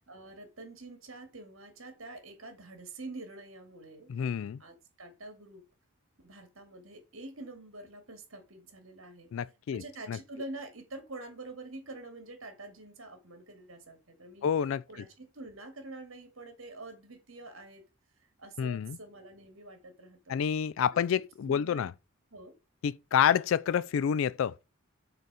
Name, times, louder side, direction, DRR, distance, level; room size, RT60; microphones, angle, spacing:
voice 1, 0.1-4.1 4.6-5.6 6.2-9.3 9.7-14.5 14.9-17.8 18.4-20.4 20.9-21.0 21.5-21.8 22.3-22.5, right 2 dB, 65° right, 2.3 m, -46 dB
voice 2, 4.1-4.6 9.3-9.8 10.1-10.2 14.4-14.8 18.6-19.0 20.3-21.9 22.8-24.5, left 8 dB, 65° left, 0.3 m, -28 dB
6.7 x 4.0 x 6.2 m
head